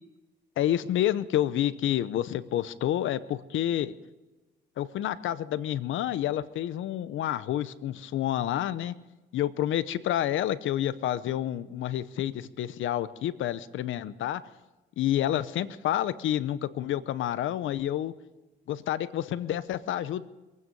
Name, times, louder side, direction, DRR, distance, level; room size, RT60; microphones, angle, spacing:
voice 1, 0.6-3.9 4.8-8.9 9.3-14.4 15.0-18.1 18.7-20.3, left 12 dB, 75° left, 15 dB, 0.8 m, -29 dB
23.5 x 9.5 x 5.4 m, 1.1 s
cardioid pair, 90°, 20 cm